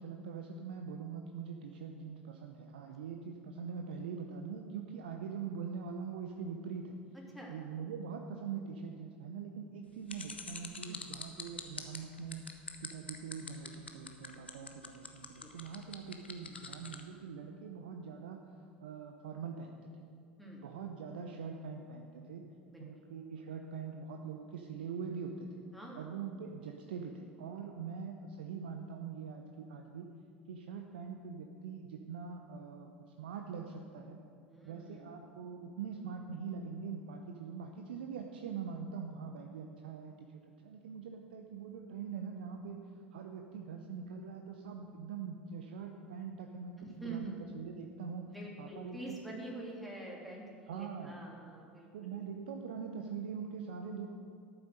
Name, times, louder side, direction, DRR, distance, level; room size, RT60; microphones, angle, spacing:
voice 1, 0.0-7.0 7.5-12.5 12.8-18.4 18.8-19.9 20.6-22.4 22.8-25.5 26.0-30.1 30.5-34.2 34.6-40.3 40.6-42.8 43.1-48.3 48.6-49.2 50.7-51.2 51.9-54.1, right 6 dB, 65° right, 3 dB, 0.8 m, -43 dB
sound 1, 10.1-17.0, left 5 dB, 80° left, 1.0 m, -44 dB
voice 2, 22.7-23.0 25.7-26.1 34.5-35.2 46.8-47.4 48.3-52.3, right 2 dB, ahead, -4 dB, 2.9 m, -46 dB
12.5 x 9.1 x 6.5 m, 2.4 s
figure-of-eight pair, 75°, 6 cm